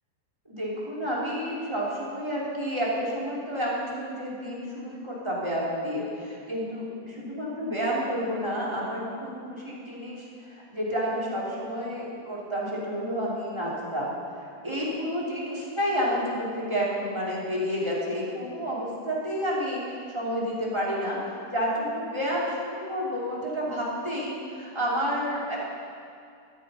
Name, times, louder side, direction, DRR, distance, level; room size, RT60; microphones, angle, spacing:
voice 1, 0.4-6.8 7.2-25.6, equal, 15° right, -7 dB, 3.3 m, -30 dB
13.5 x 12.0 x 5.7 m, 2.4 s
omnidirectional pair, 2.1 m